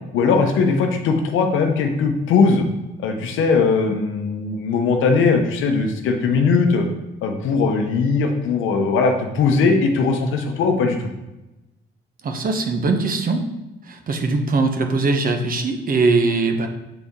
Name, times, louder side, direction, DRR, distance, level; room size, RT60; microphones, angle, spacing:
voice 1, 0.1-2.7 3.0-6.9 7.2-11.1, left 4 dB, 85° left, 4 dB, 0.8 m, -19 dB
voice 2, 12.2-13.4 13.9-16.7, right 3 dB, 45° right, 5 dB, 0.9 m, -21 dB
6.8 x 4.0 x 3.6 m, 1.0 s
cardioid pair, 90°, 20 cm